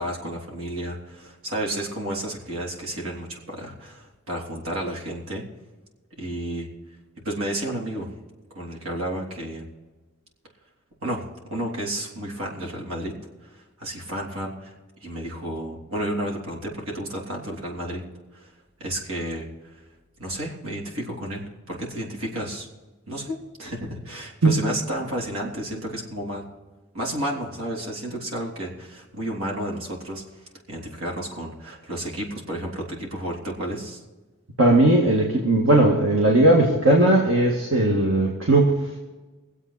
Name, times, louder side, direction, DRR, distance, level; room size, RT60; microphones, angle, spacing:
voice 1, 0.0-5.4 6.2-6.7 7.2-8.1 8.5-9.7 11.0-11.2 11.5-13.1 13.4-14.7 15.0-18.0 18.3-18.5 18.8-19.5 19.7-19.8 20.2-22.7 23.1-26.4 26.9-34.0, right 1 dB, 90° right, -1 dB, 3.7 m, -31 dB
voice 2, 34.6-38.8, right 1 dB, 70° right, -2 dB, 2.0 m, -18 dB
23.5 x 8.2 x 4.3 m, 1.2 s
head